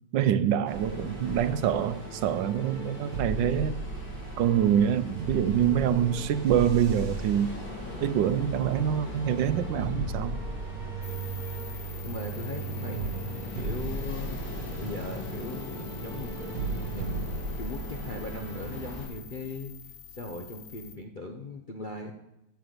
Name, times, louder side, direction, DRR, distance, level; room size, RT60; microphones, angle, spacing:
voice 1, 0.1-3.8 4.4-7.5 8.0-10.4, right 9 dB, 75° right, 13 dB, 1.3 m, -25 dB
Ocean, 0.7-19.1, left 3 dB, 80° left, 3.4 m, -42 dB
sound 1, 0.7-19.0, right 3 dB, 50° right, 1.6 m, -36 dB
sound 2, 11.0-21.0, left 9 dB, 60° left, 1.0 m, -47 dB
voice 2, 12.0-13.2 13.5-14.4 14.8-22.1, left 2 dB, 40° left, 0 dB, 0.7 m, -39 dB
10.5 x 8.8 x 7.9 m, 0.90 s
omnidirectional pair, 2.1 m